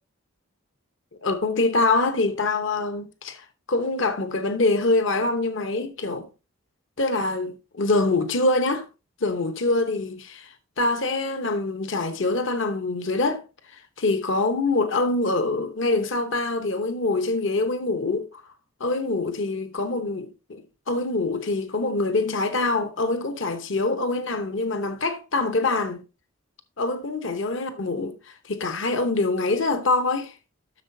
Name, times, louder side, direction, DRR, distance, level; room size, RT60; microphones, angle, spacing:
voice 1, 1.2-6.3 7.0-8.9 9.2-13.4 13.7-18.3 18.8-26.0 26.8-30.3, left 2 dB, 60° left, 0.9 m, -25 dB
12.0 x 6.5 x 2.7 m
head